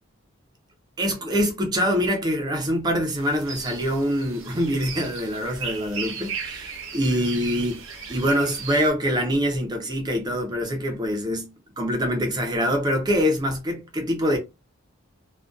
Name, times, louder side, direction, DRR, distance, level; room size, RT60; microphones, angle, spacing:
voice 1, 1.0-7.8 8.1-14.4, equal, 20° right, 0.4 m, -24 dB
sound 1, 3.1-8.9, right 6 dB, 65° right, 0.6 m, -36 dB
2.5 x 2.1 x 2.3 m
head